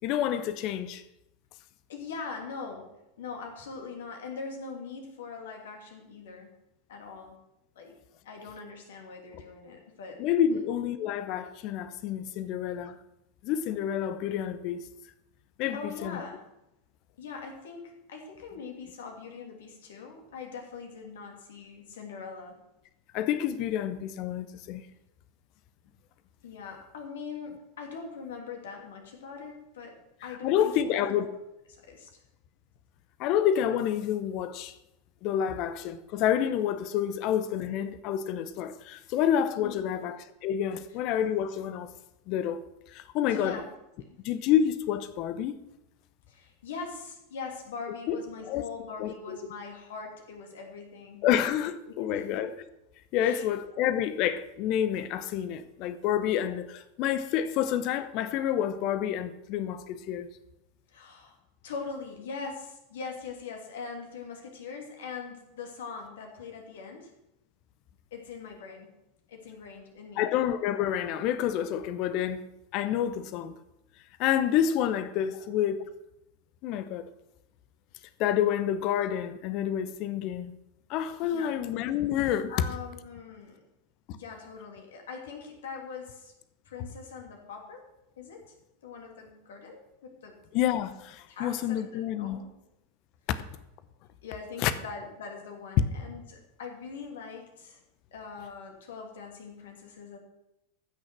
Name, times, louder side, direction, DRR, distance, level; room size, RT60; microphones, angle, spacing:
voice 1, 0.0-1.0 10.2-13.0 13.4-14.8 15.6-16.2 23.1-24.8 30.4-31.3 33.2-34.7 35.2-41.9 42.3-42.6 42.9-43.6 44.2-45.5 48.1-48.2 48.5-48.6 49.0-49.4 51.2-52.6 53.1-60.3 70.2-72.4 72.7-73.6 74.2-75.8 76.6-77.1 78.2-80.5 80.9-82.5 90.5-92.4 94.6-94.7, left 10 dB, 45° left, 0.8 m, -28 dB
voice 2, 1.9-2.9 3.2-6.5 6.9-7.4 7.7-7.9 8.2-10.2 10.5-10.6 15.7-16.4 17.2-22.6 26.4-31.0 31.9-32.2 39.6-40.0 43.2-43.6 44.0-44.2 46.3-51.3 51.9-52.2 53.2-53.5 60.9-61.3 61.6-67.1 68.1-68.9 69.3-70.3 81.2-81.6 82.5-83.6 84.1-86.3 86.7-87.8 88.2-88.5 88.8-90.4 91.3-92.5 94.2-97.8 98.1-100.2, left 5 dB, 65° left, 2.7 m, -42 dB
15.0 x 6.5 x 6.0 m
figure-of-eight pair, 85°, 0 cm